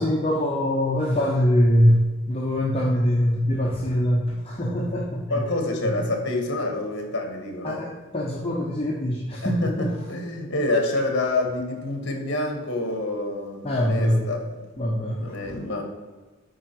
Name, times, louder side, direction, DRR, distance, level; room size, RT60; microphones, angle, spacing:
voice 1, 0.0-2.0 2.3-5.3 5.8-6.1 7.6-9.9 13.6-14.2 14.8-15.6, equal, 25° left, -3 dB, 0.8 m, -23 dB
voice 2, 5.3-7.8 9.4-14.4 15.2-15.8, left 2 dB, 55° left, 3 dB, 1.6 m, -27 dB
8.4 x 4.7 x 4.6 m, 1.3 s
head